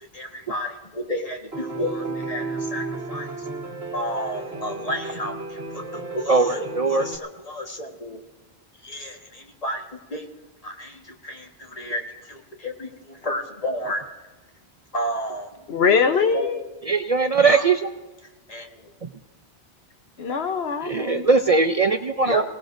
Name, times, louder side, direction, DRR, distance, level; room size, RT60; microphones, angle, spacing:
voice 1, 0.1-3.3 3.9-6.6 6.9-8.2 8.8-9.8 10.1-10.3 10.6-14.0 14.9-15.6 16.3-16.5 17.4-17.6 18.5-18.9 22.2-22.4, equal, 35° left, 2 dB, 1.6 m, -31 dB
Piano, 1.5-7.2, right 3 dB, 75° right, 2.0 m, -33 dB
voice 2, 6.3-7.1 16.9-17.8 20.8-22.4, right 4 dB, 45° right, 7 dB, 0.5 m, -20 dB
voice 3, 15.7-16.7 20.2-21.3, left 5 dB, 75° left, 8 dB, 1.1 m, -22 dB
29.0 x 18.0 x 2.6 m, 1.2 s
omnidirectional pair, 1.1 m